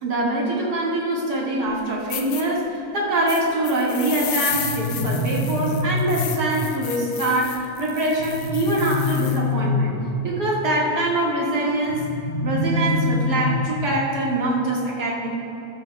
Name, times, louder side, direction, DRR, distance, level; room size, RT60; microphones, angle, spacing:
voice 1, 0.0-12.1 12.4-15.3, right 1 dB, 40° right, -5 dB, 1.7 m, -24 dB
sound 1, 1.7-1.8 2.1-2.4 3.3-9.4, left 9 dB, 70° left, 1.8 m, -33 dB
sound 2, 4.5-6.5 8.2-10.2 11.9-13.9, left 2 dB, 50° left, 1.3 m, -25 dB
14.5 x 13.5 x 2.2 m, 2.9 s
omnidirectional pair, 3.7 m